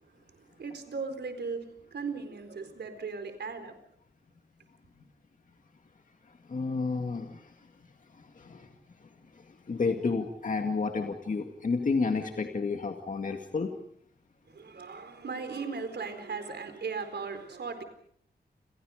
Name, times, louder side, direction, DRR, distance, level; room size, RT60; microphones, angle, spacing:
voice 1, 0.1-3.8 14.5-17.8, right 4 dB, 80° right, 8 dB, 4.2 m, -38 dB
voice 2, 6.2-7.7 8.0-13.7, left 4 dB, 50° left, 4 dB, 2.1 m, -32 dB
30.0 x 28.5 x 5.1 m, 0.68 s
wide cardioid pair, 155°, 17 cm